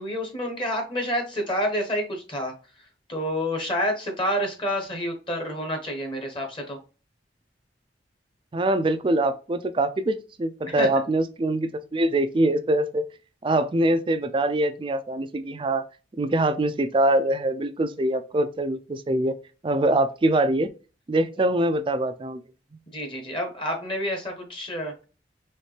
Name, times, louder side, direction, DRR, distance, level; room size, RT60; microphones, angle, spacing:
voice 1, 0.0-2.5 3.1-6.8 10.7-11.0 22.9-25.1, equal, 30° left, 1.1 m, -28 dB
voice 2, 8.5-13.0 13.4-15.8 16.2-19.3 19.6-20.7 21.1-22.4, right 1 dB, 30° right, 0.4 m, -23 dB
4.4 x 3.2 x 3.2 m
head